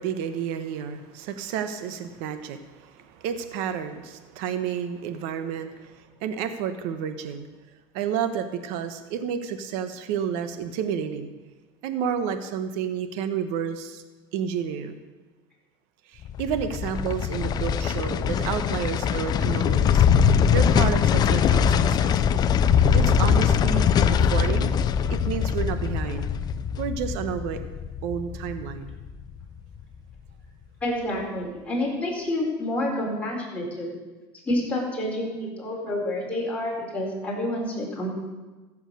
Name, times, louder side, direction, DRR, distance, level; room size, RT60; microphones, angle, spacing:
voice 1, 0.0-7.5 7.9-11.3 11.8-14.0 14.3-15.0 16.1-20.1 20.5-22.2 22.9-24.7 25.1-26.3 26.8-27.6 28.0-29.0, right 8 dB, 70° right, 10 dB, 1.0 m, -30 dB
sound 1, 16.2-29.4 29.7-29.8, left 7 dB, 35° left, 0.5 m, -22 dB
voice 2, 30.8-33.9 34.4-38.1, left 1 dB, 10° left, -4 dB, 4.7 m, -28 dB
14.5 x 7.3 x 6.7 m, 1.2 s
supercardioid pair, 135°, 12 cm